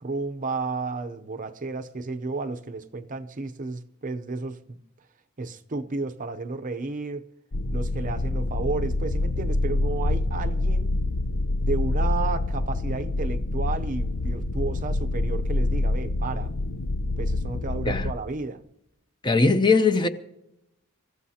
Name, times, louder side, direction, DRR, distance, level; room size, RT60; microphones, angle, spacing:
voice 1, 0.0-4.8 5.4-7.3 7.7-11.0 11.6-16.5 17.2-18.6, right 3 dB, 35° right, 0.6 m, -32 dB
sound 1, 7.5-18.1, left 2 dB, 65° left, 0.7 m, -26 dB
voice 2, 19.2-20.1, left 3 dB, 20° left, 0.6 m, -20 dB
27.0 x 15.0 x 2.8 m
head